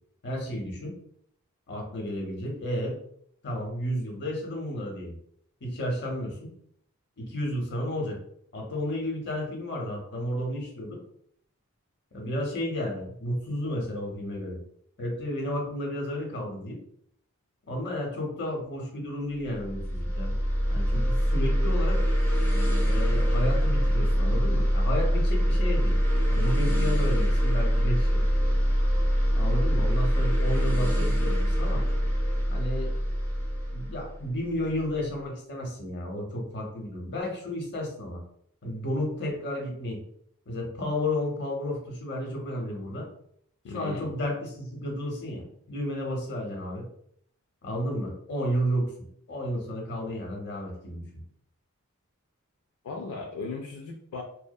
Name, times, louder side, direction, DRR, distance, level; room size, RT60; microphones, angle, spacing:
voice 1, 0.2-1.0 1.7-3.0 3.4-5.1 5.6-6.5 7.2-8.2 8.5-11.0 12.1-14.6 15.0-16.8 17.7-20.3 20.7-22.0 22.8-26.0 26.3-28.2 29.3-31.8 32.5-32.9 33.7-38.2 38.6-40.0 40.5-43.1 43.7-46.9 47.6-48.9 49.3-51.2, equal, 50° left, 0 dB, 0.7 m, -32 dB
sound 1, 19.5-34.9, equal, 10° left, 0.4 m, -24 dB
voice 2, 43.6-44.1 52.8-54.2, left 3 dB, 80° left, 2 dB, 0.3 m, -37 dB
2.7 x 2.0 x 2.2 m, 0.67 s
head